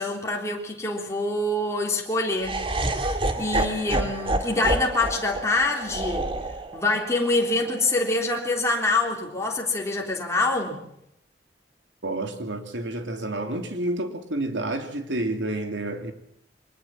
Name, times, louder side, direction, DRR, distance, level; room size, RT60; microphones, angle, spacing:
voice 1, 0.0-6.3 6.7-10.8, left 2 dB, 15° left, 3.5 m, -26 dB
Laughter, 2.4-8.5, right 2 dB, 30° right, 2.1 m, -29 dB
voice 2, 12.0-16.1, right 1 dB, 80° right, 2.8 m, -29 dB
23.5 x 20.5 x 7.5 m
head